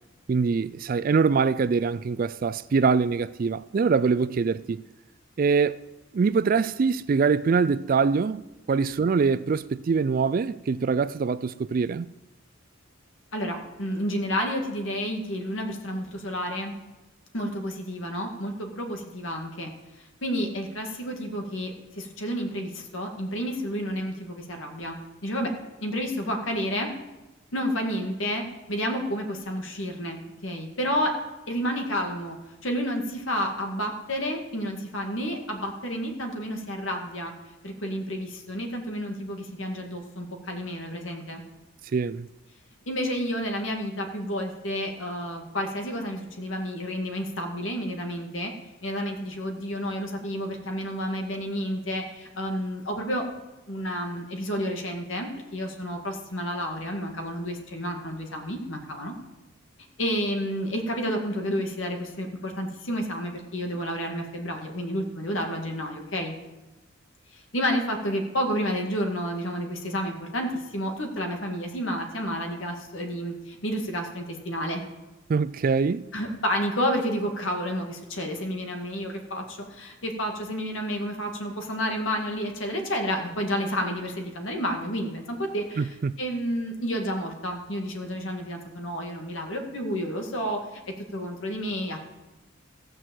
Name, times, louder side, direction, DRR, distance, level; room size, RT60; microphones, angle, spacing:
voice 1, 0.3-4.8 5.4-5.8 6.1-8.4 8.7-12.1 41.9-42.3 75.3-76.0 85.8-86.2, right 5 dB, 45° right, 0.3 m, -24 dB
voice 2, 13.3-16.7 17.3-19.7 20.0-25.0 25.2-25.5 25.8-26.9 27.5-28.4 28.7-31.1 31.5-32.4 32.6-37.3 37.6-41.4 42.9-48.5 48.8-53.3 53.7-59.1 60.0-66.3 67.3-74.8 76.1-90.8 91.1-92.0, equal, 75° left, 2.0 m, -30 dB
15.0 x 6.3 x 7.7 m
head